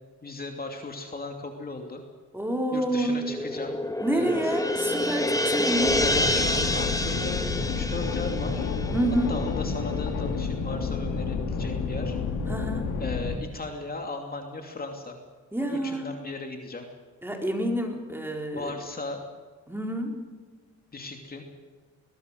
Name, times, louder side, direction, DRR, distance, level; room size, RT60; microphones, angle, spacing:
voice 1, 0.2-2.0 2.7-3.7 4.1-4.3 6.0-8.7 9.3-12.2 13.0-15.2 15.7-16.9 18.5-19.2 20.9-21.4, left 3 dB, 30° left, 3 dB, 2.7 m, -36 dB
voice 2, 2.3-3.3 4.0-6.0 8.9-9.4 12.5-13.0 15.5-16.1 17.2-18.7 19.7-20.2, right 1 dB, 5° right, 2 dB, 4.0 m, -28 dB
sound 1, 3.2-9.7, left 1 dB, 10° left, 1.5 m, -28 dB
sound 2, 5.7-13.4, left 5 dB, 80° left, 3.0 m, -30 dB
21.5 x 20.5 x 6.6 m, 1.4 s
cardioid pair, 90°, 30 cm